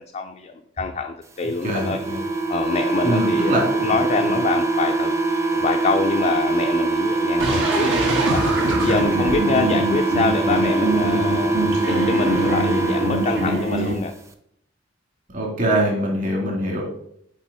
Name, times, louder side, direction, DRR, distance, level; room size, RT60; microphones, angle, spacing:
voice 1, 0.0-2.0 2.5-5.2 5.5-7.9 8.3-8.5 8.8-14.1, left 4 dB, 35° left, 3 dB, 0.4 m, -25 dB
sound 1, 1.6-13.7, right 3 dB, 15° right, 0.5 m, -23 dB
voice 2, 1.6-2.2 3.0-4.0 4.2-4.3 8.8-9.5 15.3-16.8, right 1 dB, 45° right, -1 dB, 2.0 m, -24 dB
sound 2, 7.4-13.9, right 1 dB, 75° right, 1.5 m, -24 dB
6.1 x 4.8 x 4.0 m, 0.72 s
head